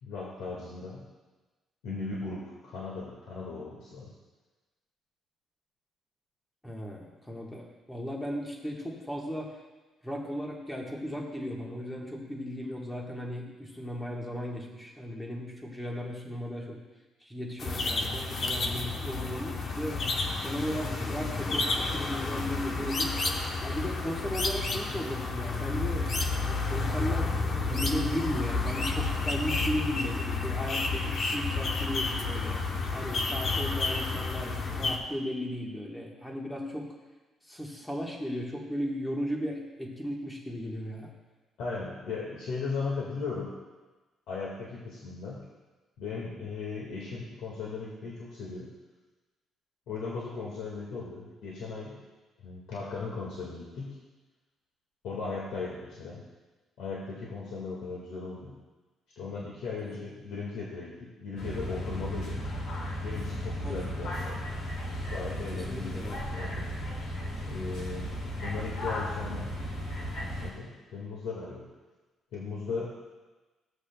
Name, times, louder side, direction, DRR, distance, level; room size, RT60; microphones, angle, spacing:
voice 1, 0.0-1.0 1.8-4.1 41.6-43.6 44.3-45.4 46.0-48.7 49.9-52.0 52.4-54.0 55.0-56.2 56.8-58.5 59.2-62.5 63.0-64.5 65.1-66.7 67.4-68.1 68.4-69.6 70.4-71.7 72.3-73.0, left 4 dB, 85° left, -5 dB, 1.8 m, -37 dB
voice 2, 6.6-9.5 10.0-16.8 17.2-20.0 20.4-23.1 23.6-32.6 32.9-36.9 37.5-41.1 59.9-60.0 63.6-63.8 65.5-66.2, equal, 10° left, -2 dB, 1.4 m, -36 dB
sound 1, 17.6-35.0, left 3 dB, 40° left, 0.9 m, -30 dB
sound 2, 61.4-70.5, equal, 70° left, 2.4 m, -35 dB
15.5 x 8.3 x 2.3 m, 1.2 s
cardioid pair, 155°, 0 cm